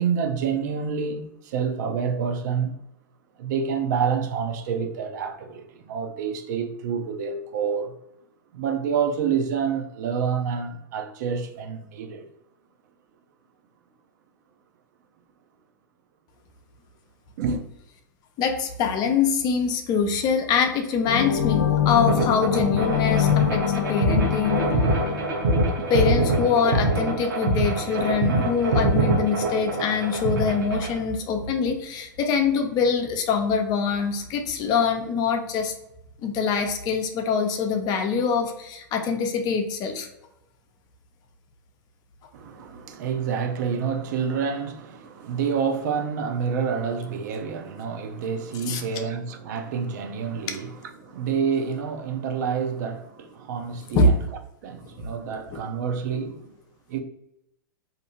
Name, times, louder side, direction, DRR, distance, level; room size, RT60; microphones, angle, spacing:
voice 1, 0.0-2.8 3.4-7.9 8.5-12.2 17.4-17.6 42.3-54.2 54.6-56.5 56.9-57.0, right 6 dB, 60° right, 0.5 m, -28 dB
voice 2, 18.4-24.7 25.9-35.7 36.2-40.1 48.7-48.8 53.9-54.1, left 5 dB, 35° left, 0.5 m, -24 dB
sound 1, 21.1-26.4, left 9 dB, 85° left, 0.4 m, -25 dB
sound 2, 22.1-31.0, right 2 dB, 80° right, 0.9 m, -24 dB
2.7 x 2.6 x 2.5 m
hypercardioid pair, 110°, 11 cm